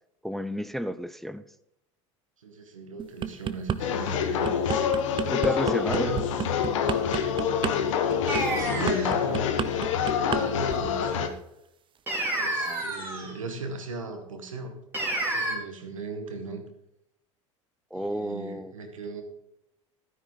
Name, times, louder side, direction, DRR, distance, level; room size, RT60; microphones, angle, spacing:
voice 1, 0.2-1.4 5.3-6.1 12.6-13.1 17.9-18.7, equal, ahead, 12 dB, 0.5 m, -32 dB
voice 2, 2.4-4.5 5.2-6.3 8.1-9.5 10.1-11.3 12.3-16.6 17.9-19.2, right 3 dB, 85° right, 5 dB, 1.8 m, -38 dB
sound 1, 3.0-3.8 4.2-10.4 10.7-11.0, right 8 dB, 30° right, 0.8 m, -30 dB
sound 2, 3.8-11.3, left 7 dB, 70° left, 1.2 m, -26 dB
sound 3, 8.3-9.2 12.1-13.3 14.9-15.5, right 1 dB, 15° right, 3.5 m, -29 dB
12.5 x 10.0 x 4.0 m, 0.80 s
hypercardioid pair, 80°, 16 cm